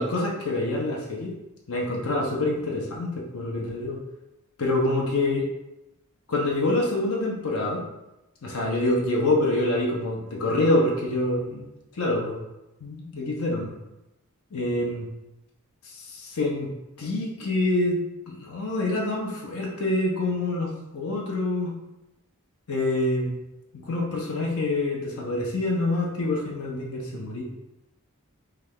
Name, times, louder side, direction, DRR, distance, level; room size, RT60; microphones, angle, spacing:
voice 1, 0.0-1.3 1.7-4.0 4.6-5.5 6.3-7.8 8.4-11.6 11.9-12.4 12.8-13.7 14.5-15.1 15.8-16.7 17.0-18.0 18.3-21.7 22.7-23.3 23.7-27.4, left 2 dB, 80° left, -2 dB, 0.7 m, -26 dB
3.2 x 2.4 x 3.5 m, 0.94 s
head